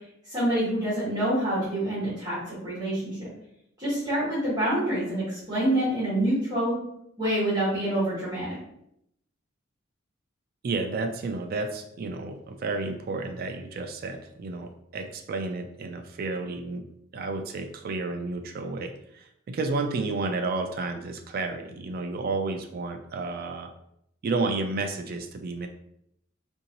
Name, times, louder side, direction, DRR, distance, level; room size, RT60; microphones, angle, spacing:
voice 1, 0.2-3.3 3.8-6.7 7.2-8.6, right 1 dB, 20° right, -11 dB, 1.5 m, -27 dB
voice 2, 10.6-16.8 17.1-23.7 24.2-25.7, right 3 dB, 45° right, 6 dB, 0.3 m, -31 dB
3.7 x 2.6 x 2.9 m, 0.76 s
head